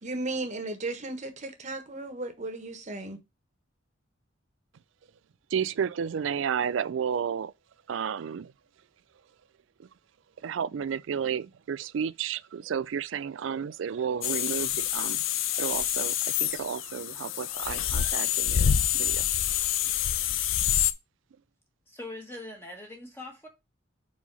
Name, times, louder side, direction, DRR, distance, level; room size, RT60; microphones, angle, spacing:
voice 1, 0.0-3.2, right 2 dB, 40° right, 1.2 m, -35 dB
voice 2, 5.5-7.5 7.9-8.5 9.8-9.9 10.4-15.2 15.6-16.1 16.4-19.3, right 7 dB, 75° right, 0.4 m, -32 dB
sound 1, 14.2-20.9, left 10 dB, 80° left, 0.5 m, -27 dB
voice 3, 21.9-23.5, left 2 dB, 10° left, 1.3 m, -42 dB
4.7 x 4.2 x 5.5 m
head